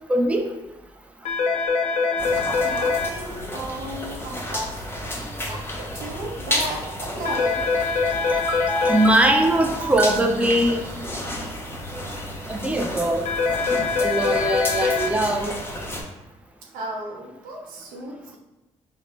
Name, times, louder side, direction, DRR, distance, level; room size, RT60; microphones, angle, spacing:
voice 1, 0.1-0.5 8.1-10.8 12.5-13.3 14.0-15.5, right 1 dB, 10° right, 3 dB, 0.5 m, -21 dB
sound 1, 1.3-3.1 7.3-9.1 13.3-15.1, left 4 dB, 55° left, 0.6 m, -23 dB
voice 2, 1.9-4.9 5.5-7.6 16.7-18.4, right 1 dB, 85° right, -1 dB, 0.7 m, -34 dB
sound 2, 2.2-16.0, left 1 dB, 15° left, 0.9 m, -32 dB
3.7 x 2.1 x 3.1 m, 1.0 s
supercardioid pair, 50°, 14 cm